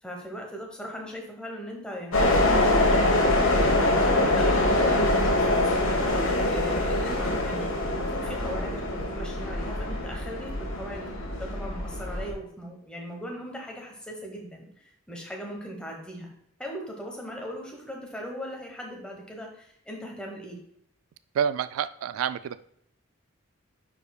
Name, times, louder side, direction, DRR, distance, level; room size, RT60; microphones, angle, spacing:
voice 1, 0.0-16.3 16.6-20.6, equal, 5° left, 0 dB, 1.1 m, -39 dB
sound 1, 2.1-12.3, left 1 dB, 75° left, 1.2 m, -24 dB
voice 2, 21.3-22.6, right 8 dB, 85° right, 15 dB, 0.3 m, -28 dB
9.9 x 4.8 x 2.3 m, 0.71 s
head